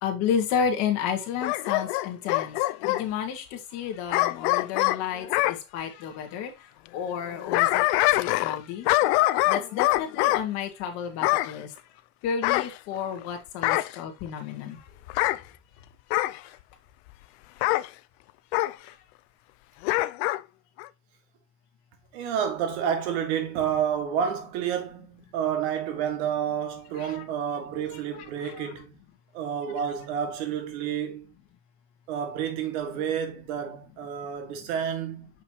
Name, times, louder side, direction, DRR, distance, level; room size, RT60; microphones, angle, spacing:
voice 1, 0.0-2.6 2.8-6.5 6.9-7.8 8.2-8.9 9.5-11.7 12.2-14.8 18.8-18.9 27.1-27.2, left 7 dB, 55° left, 1.7 m, -31 dB
Bark / Growling, 1.4-3.0 4.1-5.6 7.2-8.6 8.9-10.4 11.2-11.5 12.4-13.2 13.6-14.0 15.1-15.4 16.1-16.4 17.6-17.9 18.5-18.7 19.8-20.4 20.8-20.9, left 18 dB, 80° left, 0.5 m, -24 dB
voice 2, 22.1-29.0 29.3-31.3 32.1-35.3, right 8 dB, 85° right, 1.8 m, -30 dB
6.4 x 5.7 x 2.8 m
cardioid pair, 165°, 32 cm